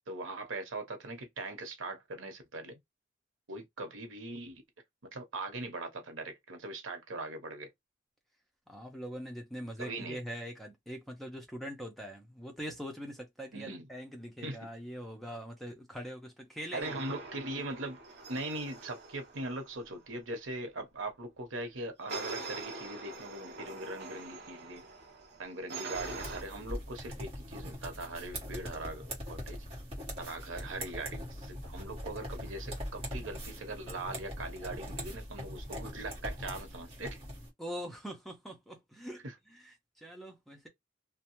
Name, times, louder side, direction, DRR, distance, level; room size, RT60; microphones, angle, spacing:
voice 1, 0.1-2.8 3.5-4.6 5.1-7.7 9.8-10.2 13.5-13.9 14.4-14.6 16.7-18.0 18.3-24.8 25.4-29.6 30.2-37.2 39.2-39.3, right 2 dB, 85° right, 0.9 m, -40 dB
voice 2, 8.7-16.9 37.6-40.7, equal, ahead, 0.7 m, -43 dB
sound 1, 16.8-20.0 22.1-26.4, right 3 dB, 55° right, 0.8 m, -44 dB
sound 2, 25.9-37.5, equal, 30° right, 1.2 m, -42 dB
2.7 x 2.2 x 2.9 m
head